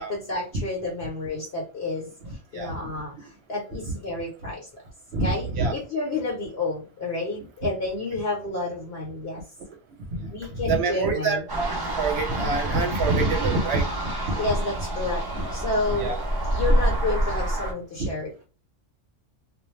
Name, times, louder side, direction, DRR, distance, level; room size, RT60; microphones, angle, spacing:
voice 1, 0.0-4.7 5.2-9.4 10.3-11.4 14.4-16.1 16.5-18.5, left 2 dB, 55° left, 1.0 m, -30 dB
voice 2, 5.1-5.7 10.1-11.7 12.0-13.9 14.3-14.5 15.3-15.5 15.9-16.2 18.0-18.1, right 3 dB, 60° right, 0.9 m, -26 dB
sound 1, 11.5-17.7, right 1 dB, 20° right, 0.8 m, -27 dB
2.4 x 2.0 x 3.1 m
omnidirectional pair, 1.3 m